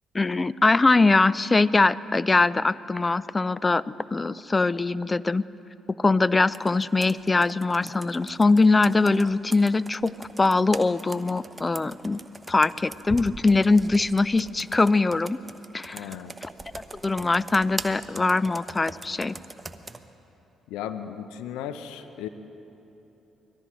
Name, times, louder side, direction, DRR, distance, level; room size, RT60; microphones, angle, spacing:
voice 1, 0.1-3.8 4.1-5.4 6.0-10.1 10.4-12.2 12.5-15.4 15.7-16.1 16.4-16.5 16.8-19.3, left 3 dB, 25° left, 19 dB, 0.4 m, -22 dB
Computer keyboard, 6.5-20.0, right 2 dB, 20° right, 0.9 m, -41 dB
voice 2, 15.9-16.3 20.7-22.3, left 9 dB, 75° left, 10 dB, 0.6 m, -35 dB
24.5 x 18.0 x 3.1 m, 3.0 s
hypercardioid pair, 45°, 0 cm